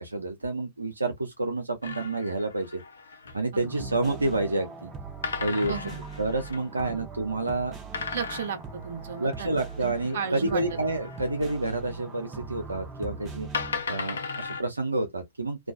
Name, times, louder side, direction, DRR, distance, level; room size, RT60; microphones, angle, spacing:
voice 1, 0.0-2.8 3.3-4.9 5.4-5.8 6.2-7.8 9.2-13.5 13.9-15.7, right 2 dB, 90° right, 0.5 m, -29 dB
sound 1, 1.8-3.5 5.2-6.7 7.9-11.5 12.7-12.8 13.5-14.6, left 5 dB, 70° left, 0.6 m, -37 dB
voice 2, 3.5-3.9 5.7-6.0 6.8-7.0 8.1-10.6, right 6 dB, 60° right, 0.7 m, -35 dB
sound 2, 3.6-13.8, right 4 dB, 25° right, 0.7 m, -41 dB
2.4 x 2.3 x 2.3 m
figure-of-eight pair, 110°, 0 cm